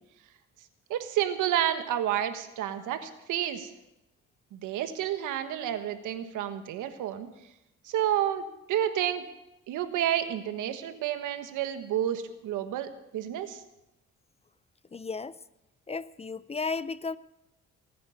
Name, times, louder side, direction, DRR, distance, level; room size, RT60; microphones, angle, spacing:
voice 1, 0.9-3.7 4.5-7.3 7.8-9.2 9.7-13.6, right 11 dB, 90° right, 9 dB, 1.5 m, -30 dB
voice 2, 14.9-15.4 15.9-17.2, left 4 dB, 20° left, 17 dB, 0.5 m, -34 dB
19.0 x 9.5 x 7.1 m, 0.91 s
cardioid pair, 90°, 30 cm